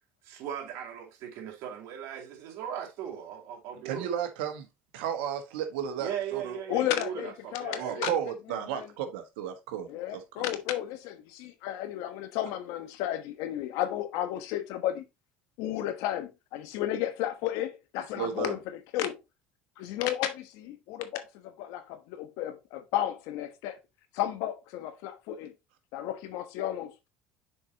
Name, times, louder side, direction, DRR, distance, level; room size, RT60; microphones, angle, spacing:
voice 1, 0.2-4.1 6.0-8.1, right 9 dB, 70° right, 2.3 m, -38 dB
voice 2, 3.8-4.7 4.9-6.6 7.8-10.4 18.2-18.6, right 9 dB, 85° right, 1.3 m, -33 dB
voice 3, 6.7-8.1 8.7-8.9 9.9-15.0 15.6-19.2 19.8-23.8 24.1-25.5 25.9-27.1, left 12 dB, 75° left, 1.1 m, -33 dB
7.1 x 4.6 x 2.9 m
supercardioid pair, 85°, 6 cm